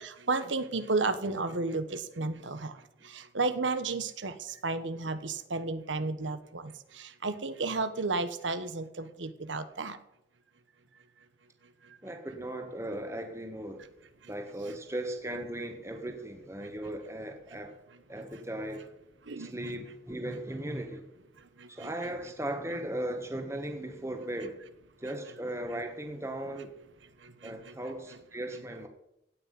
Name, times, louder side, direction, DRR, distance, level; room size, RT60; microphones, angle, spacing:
voice 1, 0.1-2.7 3.0-10.0 11.8-12.0 14.2-14.3 19.3-19.5 21.6-21.9 27.2-27.7, right 3 dB, 85° right, 11 dB, 1.2 m, -33 dB
voice 2, 12.0-13.8 14.3-17.8 18.1-18.9 19.4-21.1 21.7-24.6 25.0-26.8 27.4-28.9, right 1 dB, 15° right, 5 dB, 1.3 m, -37 dB
17.0 x 6.0 x 9.7 m, 0.82 s
head